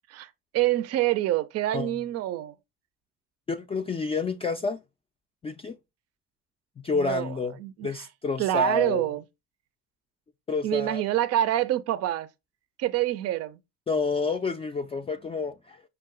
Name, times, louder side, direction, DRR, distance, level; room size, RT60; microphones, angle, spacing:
voice 1, 0.1-2.5 6.9-8.0 8.4-9.2 10.6-12.3 12.8-13.6, right 13 dB, 60° right, 0.5 m, -26 dB
voice 2, 3.5-4.8 5.4-5.8 6.8-9.1 10.5-11.0 13.9-15.8, left 4 dB, 20° left, 0.3 m, -29 dB
5.5 x 2.2 x 3.7 m
supercardioid pair, 75°, 29 cm